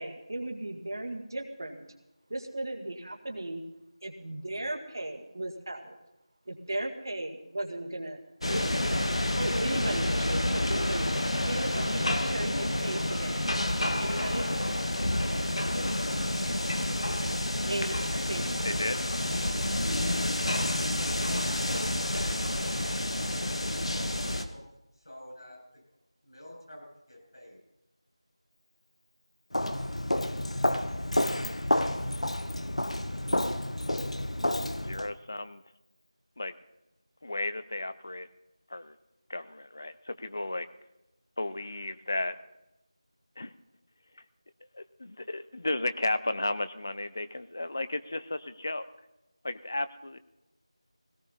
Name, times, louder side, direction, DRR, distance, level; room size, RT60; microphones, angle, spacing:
voice 1, 0.0-1.8 2.3-3.6 4.0-6.0 6.5-8.2 8.5-9.0 9.4-11.1 11.4-13.4 14.0-14.5 17.7-18.6, right 1 dB, 40° right, 4 dB, 1.9 m, -36 dB
sound 1, 8.4-24.4, left 1 dB, 65° left, 1.6 m, -29 dB
voice 2, 18.6-19.0 21.7-21.9 34.6-35.6 36.4-36.5 37.2-38.3 38.7-39.0 39.3-40.7 41.4-42.4 43.4-43.5 44.2-44.3 44.7-48.9 49.4-50.2, left 2 dB, 30° left, 13 dB, 0.6 m, -34 dB
voice 3, 23.5-24.6 25.0-25.6 26.2-27.6, equal, 50° left, -1 dB, 7.1 m, -49 dB
Walk footsteps, 29.5-35.1, left 1 dB, 90° left, 1.2 m, -30 dB
18.0 x 17.5 x 4.2 m, 0.92 s
figure-of-eight pair, 175°, 3 cm